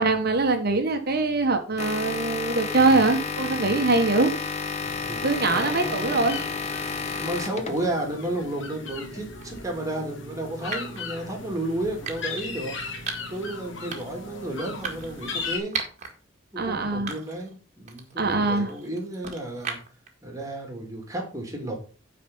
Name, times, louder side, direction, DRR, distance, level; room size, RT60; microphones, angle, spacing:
voice 1, 0.0-4.3 5.2-6.4 16.6-17.1 18.2-18.7, right 3 dB, 50° right, 6 dB, 1.3 m, -23 dB
sound 1, 1.8-8.0, left 5 dB, 35° left, 0.9 m, -31 dB
voice 2, 2.5-3.2 5.0-6.4 7.2-12.8 13.3-15.8 16.5-19.8 20.2-21.7, right 1 dB, 15° right, 1 dB, 2.7 m, -32 dB
sound 2, 4.8-15.6, left 3 dB, 65° left, 2.0 m, -38 dB
sound 3, 9.4-9.6 10.7-11.0 12.0-12.5 13.1-13.4 13.9-14.2 14.8-16.1 16.5-16.6 17.1-17.5 17.9-20.1, right 5 dB, 35° right, 1.9 m, -36 dB
9.2 x 4.9 x 5.5 m, 0.37 s
head